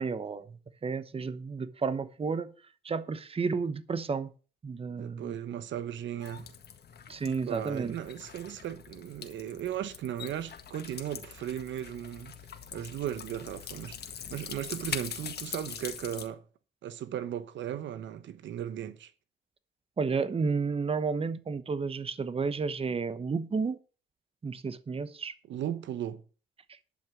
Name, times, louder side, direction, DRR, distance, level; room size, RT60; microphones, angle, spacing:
voice 1, 0.0-2.5 2.8-4.3 4.6-5.3 7.1-7.9 20.0-23.8 24.4-25.3, right 5 dB, 30° right, 1.0 m, -32 dB
voice 2, 5.0-6.5 7.5-12.4 12.7-16.4 16.8-19.1 25.5-26.2, right 10 dB, 70° right, 0.9 m, -36 dB
sound 1, 6.2-16.3, left 8 dB, 55° left, 1.7 m, -43 dB
11.5 x 5.7 x 7.3 m
cardioid pair, 90°, 20 cm